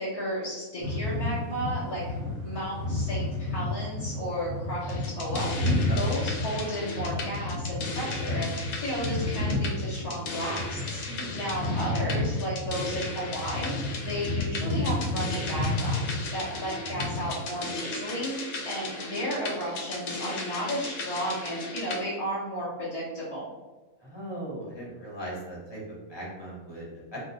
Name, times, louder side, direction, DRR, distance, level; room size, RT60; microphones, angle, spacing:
voice 1, 0.0-2.0 2.4-5.5 5.8-11.0 11.3-16.0 16.3-18.3 18.6-23.5, equal, 35° left, -9 dB, 0.5 m, -33 dB
sound 1, 0.8-17.3, left 2 dB, 75° right, 1.0 m, -31 dB
sound 2, 4.8-22.0, left 3 dB, 85° left, 1.1 m, -37 dB
voice 2, 24.0-27.2, right 1 dB, 20° left, -6 dB, 1.0 m, -38 dB
2.6 x 2.3 x 3.9 m, 1.2 s
omnidirectional pair, 1.5 m